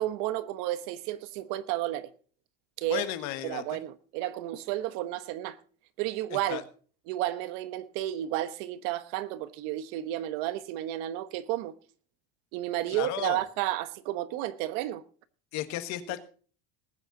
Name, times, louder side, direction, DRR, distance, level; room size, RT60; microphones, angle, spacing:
voice 1, 0.0-2.1 2.8-3.1 3.4-5.6 6.0-6.6 7.1-11.7 12.5-15.0, right 14 dB, 60° right, 1.2 m, -32 dB
voice 2, 2.9-3.8 6.3-6.6 12.9-13.4 15.5-16.2, left 13 dB, 50° left, 1.5 m, -34 dB
20.0 x 9.2 x 4.0 m
cardioid pair, 175°, 36 cm